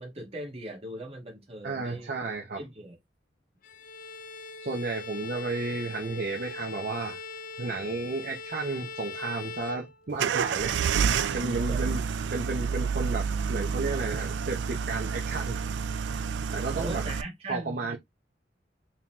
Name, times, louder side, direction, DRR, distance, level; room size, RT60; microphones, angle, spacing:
voice 1, 0.0-2.1 2.6-3.0 11.5-11.9 16.7-18.0, right 1 dB, 35° right, 1.3 m, -39 dB
voice 2, 1.6-2.6 4.6-7.2 7.6-12.0 12.3-15.6 16.1-16.3 16.5-17.0 17.5-18.0, right 3 dB, 55° right, 0.7 m, -33 dB
Bowed string instrument, 3.6-10.4, left 4 dB, 50° left, 0.5 m, -41 dB
sound 1, 10.2-17.2, right 6 dB, 75° right, 0.4 m, -29 dB
3.7 x 2.9 x 2.9 m
head